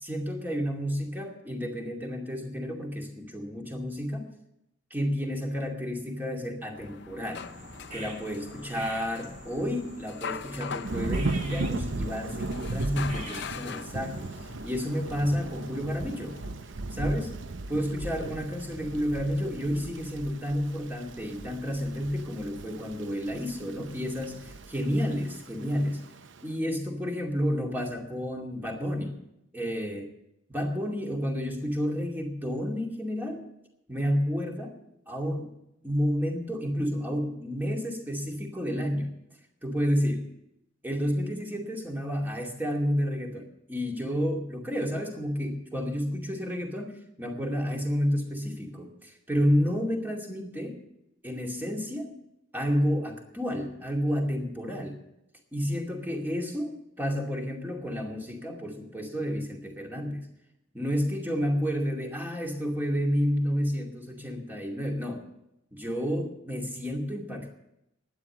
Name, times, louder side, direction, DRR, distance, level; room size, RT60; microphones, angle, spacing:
voice 1, 0.0-4.3 4.9-7.5 7.9-14.3 14.6-16.4 16.9-17.4 17.7-26.0 26.4-29.2 29.5-30.1 30.5-33.4 33.9-34.8 35.1-35.5 35.8-39.1 39.6-40.3 40.8-50.8 51.2-52.1 52.5-55.0 55.5-60.3 60.7-65.2 65.7-67.5, equal, 10° right, 1 dB, 2.4 m, -30 dB
sound 1, 6.7-16.5, left 6 dB, 65° left, 0.6 m, -43 dB
sound 2, 7.3-14.6, right 1 dB, 40° right, 2.7 m, -45 dB
Thunder / Rain, 10.8-26.4, right 3 dB, 70° right, 0.7 m, -37 dB
12.0 x 10.0 x 7.9 m, 0.84 s
head